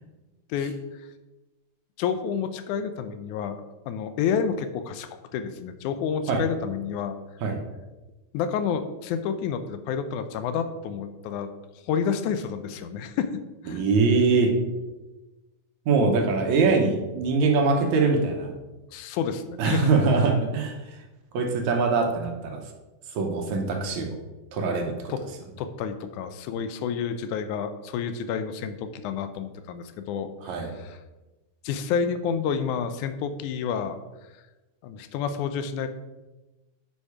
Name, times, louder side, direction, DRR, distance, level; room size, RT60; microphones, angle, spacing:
voice 1, 2.0-7.2 8.3-11.5 11.8-13.3 13.6-13.8 18.9-19.9 25.1-25.2 25.6-31.0 31.6-34.0 34.8-35.9, left 7 dB, 85° left, 10 dB, 2.1 m, -29 dB
voice 2, 13.7-14.5 15.9-18.5 19.6-20.8 21.3-22.6 23.2-24.2 24.5-25.1 30.4-30.7, right 4 dB, 75° right, 3 dB, 2.3 m, -23 dB
8.5 x 5.3 x 4.8 m, 1.1 s
omnidirectional pair, 3.4 m